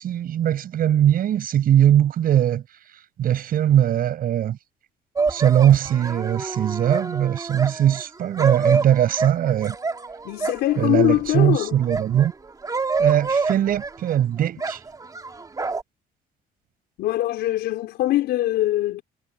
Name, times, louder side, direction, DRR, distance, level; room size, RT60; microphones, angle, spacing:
voice 1, 0.0-2.6 3.2-4.6 5.3-9.7 10.8-12.3 13.0-14.8, right 10 dB, 60° right, 6.8 m, -20 dB
sound 1, 5.2-11.1 11.6-14.2 14.6-15.8, right 4 dB, 20° right, 3.0 m, -27 dB
voice 2, 10.2-11.8 17.0-19.0, left 15 dB, 80° left, 4.7 m, -22 dB
cardioid pair, 110°, 17 cm